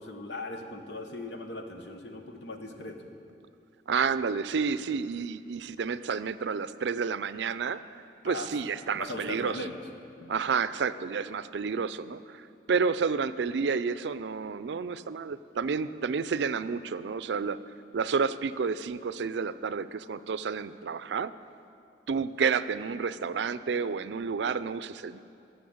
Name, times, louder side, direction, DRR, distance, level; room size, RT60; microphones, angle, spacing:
voice 1, 0.0-3.1 8.2-9.8 10.2-10.6, left 2 dB, 75° left, 5 dB, 1.1 m, -39 dB
voice 2, 3.9-7.8 8.2-9.6 10.3-17.6 17.9-21.3 22.1-25.2, right 5 dB, 80° right, 14 dB, 0.4 m, -30 dB
14.0 x 7.0 x 7.8 m, 2.6 s
head